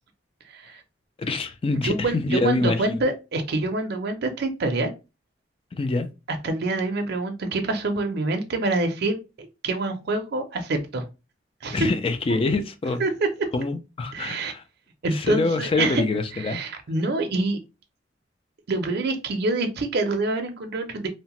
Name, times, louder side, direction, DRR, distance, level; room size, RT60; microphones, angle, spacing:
voice 1, 0.5-0.8 1.8-4.9 6.4-11.0 11.6-11.9 13.0-13.1 14.1-14.5 15.0-16.0 16.4-17.6 18.7-21.1, right 2 dB, 60° right, 0.5 m, -26 dB
voice 2, 1.2-3.0 5.7-6.1 11.7-13.0 13.5-14.6 15.1-16.6, left 3 dB, 30° left, 0.3 m, -25 dB
2.7 x 2.1 x 2.9 m
head